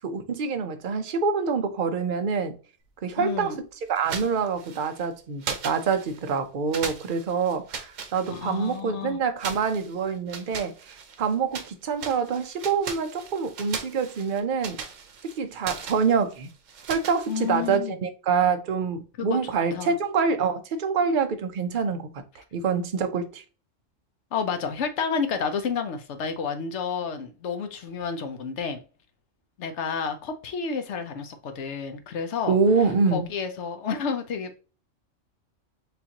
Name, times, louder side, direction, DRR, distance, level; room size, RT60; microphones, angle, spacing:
voice 1, 0.0-2.6 3.0-3.5 3.9-10.7 11.2-14.8 15.4-16.5 16.9-22.2 22.5-23.4 32.5-33.3, right 5 dB, 50° right, 0.7 m, -26 dB
voice 2, 3.2-3.6 8.3-9.2 17.3-18.0 19.2-20.0 24.3-28.8 29.6-34.6, left 6 dB, 65° left, 1.0 m, -30 dB
sound 1, 4.0-5.1 5.4-6.4 6.7-8.8 9.4-11.7 12.0-17.8, right 6 dB, 85° right, 1.2 m, -38 dB
6.9 x 2.6 x 2.9 m
omnidirectional pair, 1.3 m